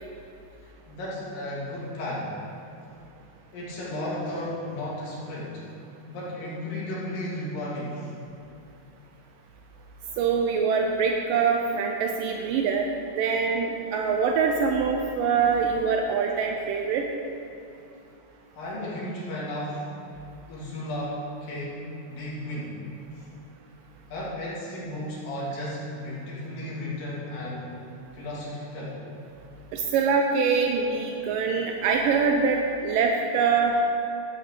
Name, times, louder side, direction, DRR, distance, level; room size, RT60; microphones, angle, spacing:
voice 1, 0.9-2.4 3.5-5.6 6.1-8.1 18.6-19.9 20.5-22.8 24.1-27.8 28.1-29.0, left 1 dB, 80° left, -7 dB, 4.0 m, -34 dB
voice 2, 10.2-12.9 13.2-17.0 29.7-33.8, right 5 dB, 80° right, 2 dB, 2.2 m, -24 dB
13.5 x 9.0 x 3.8 m, 2.6 s
omnidirectional pair, 3.9 m